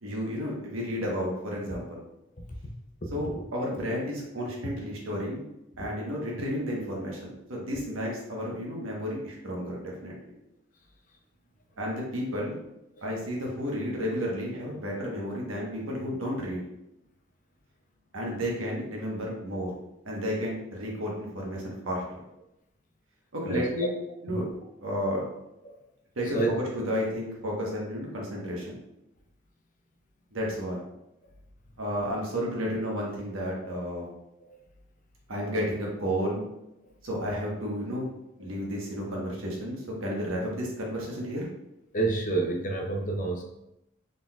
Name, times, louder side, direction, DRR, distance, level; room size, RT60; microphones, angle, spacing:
voice 1, 0.0-2.0 3.1-5.4 5.8-10.1 11.8-12.6 13.0-16.6 18.1-19.7 20.0-22.0 23.3-23.9 24.2-24.5 24.8-25.2 26.2-26.4 26.7-28.8 30.3-30.8 31.8-34.1 35.3-36.4 37.0-38.1 38.4-41.5, equal, 80° right, -3 dB, 1.1 m, -32 dB
voice 2, 2.4-2.7 3.0-3.1 23.5-23.9 24.3-24.4 25.6-25.8 26.3-26.5 38.4-38.5 41.9-43.4, right 3 dB, 40° left, 2 dB, 0.5 m, -29 dB
4.0 x 3.8 x 2.3 m, 0.87 s
head